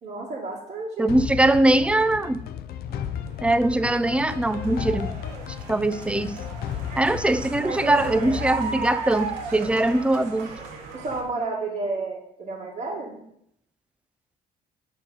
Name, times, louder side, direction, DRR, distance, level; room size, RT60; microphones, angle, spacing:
voice 1, 0.0-1.1 7.2-8.5 9.7-9.8 10.9-13.3, right 3 dB, 45° right, -5 dB, 2.0 m, -32 dB
voice 2, 1.0-2.4 3.4-5.2 5.7-6.4 7.0-10.5, right 1 dB, 5° right, 13 dB, 0.5 m, -22 dB
sound 1, 1.1-9.9, left 9 dB, 65° left, 0.6 m, -35 dB
sound 2, 2.9-11.2, right 4 dB, 90° right, 2.0 m, -37 dB
7.4 x 5.1 x 5.6 m, 0.74 s
cardioid pair, 110°, 17 cm